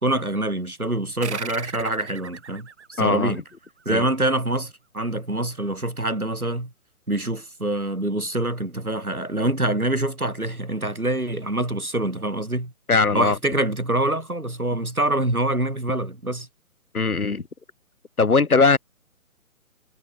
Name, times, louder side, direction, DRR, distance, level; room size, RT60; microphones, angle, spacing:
voice 1, 0.0-3.4 3.8-6.7 7.1-12.7 13.1-16.5, right 1 dB, 90° right, 2.8 m, -25 dB
sound 1, 1.2-4.3, right 6 dB, 50° right, 2.3 m, -38 dB
voice 2, 3.0-3.3 3.9-4.1 12.9-13.4 16.9-17.4 18.2-18.8, left 4 dB, 90° left, 1.0 m, -19 dB
figure-of-eight pair, 140°, 42 cm